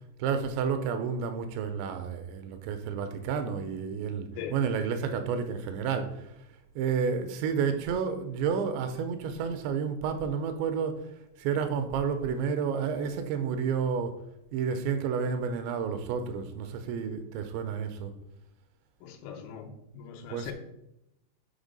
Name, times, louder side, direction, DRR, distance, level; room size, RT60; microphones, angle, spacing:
voice 1, 0.2-6.2 6.8-11.0 11.4-14.2 14.5-18.1 20.3-20.5, right 6 dB, 85° right, 8 dB, 2.8 m, -30 dB
voice 2, 19.0-20.5, left 8 dB, 80° left, 4 dB, 3.2 m, -41 dB
7.2 x 4.6 x 5.2 m, 0.84 s
omnidirectional pair, 5.3 m